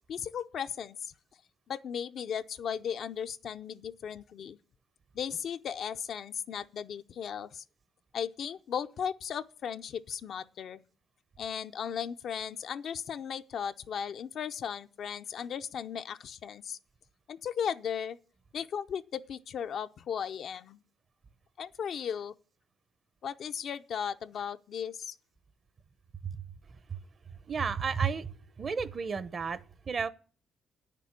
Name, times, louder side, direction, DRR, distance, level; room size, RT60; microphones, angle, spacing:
voice 1, 0.1-1.1 1.7-4.6 5.1-7.6 8.1-10.8 11.4-16.8 17.3-18.2 18.5-20.8 21.6-22.3 23.2-25.2, left 8 dB, 65° left, 0.6 m, -36 dB
voice 2, 27.5-28.3 28.6-29.6 29.9-30.1, right 6 dB, 45° right, 0.8 m, -31 dB
9.2 x 6.8 x 8.2 m
cardioid pair, 90°, 0 cm